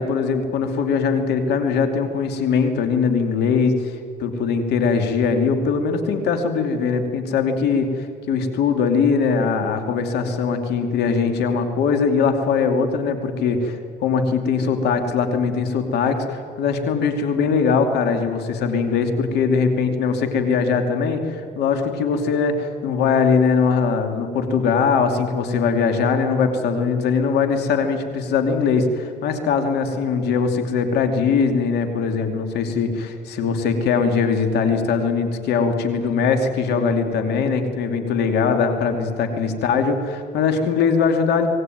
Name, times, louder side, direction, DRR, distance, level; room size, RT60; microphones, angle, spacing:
voice 1, 0.0-3.9 4.2-41.5, left 5 dB, 75° left, 6 dB, 2.8 m, -21 dB
25.0 x 19.0 x 9.4 m, 2.5 s
cardioid pair, 110°, 17 cm